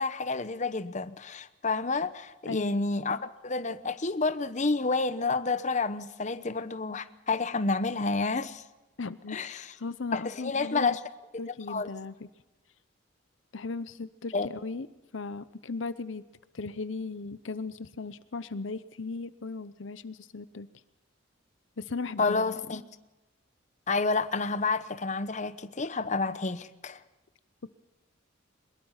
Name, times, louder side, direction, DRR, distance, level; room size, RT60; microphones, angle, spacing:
voice 1, 0.0-8.6 9.3-9.7 10.1-11.0 11.5-11.9 14.3-14.5 22.2-22.8 23.9-27.0, left 3 dB, 40° left, 0.9 m, -29 dB
voice 2, 2.5-3.3 9.0-11.0 11.4-12.3 13.5-14.9 15.1-16.2 16.5-20.7 21.8-22.6, left 4 dB, 70° left, 0.8 m, -37 dB
23.0 x 21.5 x 5.7 m
head